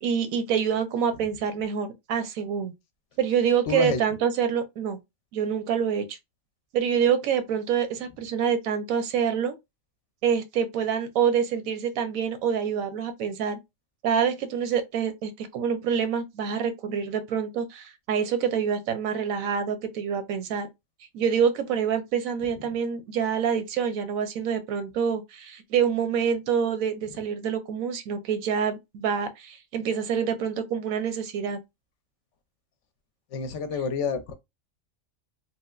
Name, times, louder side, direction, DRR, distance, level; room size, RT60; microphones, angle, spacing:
voice 1, 0.0-2.7 3.2-5.0 5.3-6.2 6.7-9.5 10.2-13.6 14.0-20.7 21.1-31.6, right 7 dB, 85° right, 1.1 m, -26 dB
voice 2, 3.7-4.0 33.3-34.3, left 5 dB, 65° left, 0.9 m, -28 dB
3.1 x 3.0 x 2.3 m
omnidirectional pair, 1.4 m